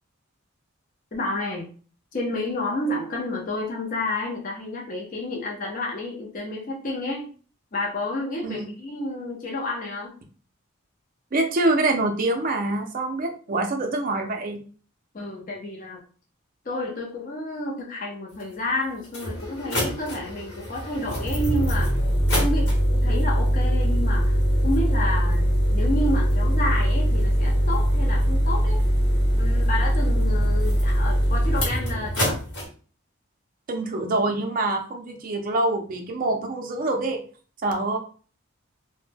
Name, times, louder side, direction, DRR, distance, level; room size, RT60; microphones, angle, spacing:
voice 1, 1.1-1.7 2.1-7.2 7.7-10.1 15.1-16.0 16.7-22.0 22.4-24.4 24.6-28.8 29.3-32.4, left 1 dB, 40° left, -2 dB, 0.5 m, -30 dB
voice 2, 11.3-14.6 33.7-37.2 37.6-38.0, right 2 dB, 40° right, 3 dB, 0.4 m, -25 dB
sound 1, 18.4-18.5 19.0-32.7, equal, 55° left, 1.0 m, -22 dB
2.1 x 2.1 x 3.2 m, 0.41 s
head